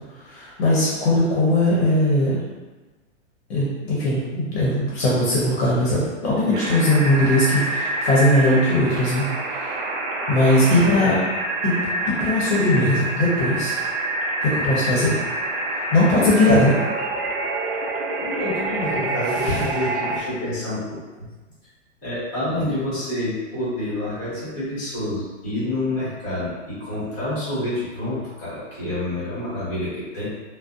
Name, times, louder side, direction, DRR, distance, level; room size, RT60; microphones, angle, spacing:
voice 1, 0.2-2.4 3.5-9.7 10.3-11.1 11.6-11.8 12.2-13.7 14.4-15.2 15.9-16.7, left 1 dB, 60° left, -7 dB, 0.8 m, -19 dB
sound 1, 6.5-20.2, right 2 dB, 50° right, 0.4 m, -27 dB
voice 2, 18.2-21.3 22.0-30.2, left 1 dB, 20° left, -10 dB, 1.2 m, -28 dB
2.5 x 2.1 x 2.4 m, 1.2 s
supercardioid pair, 170°, 36 cm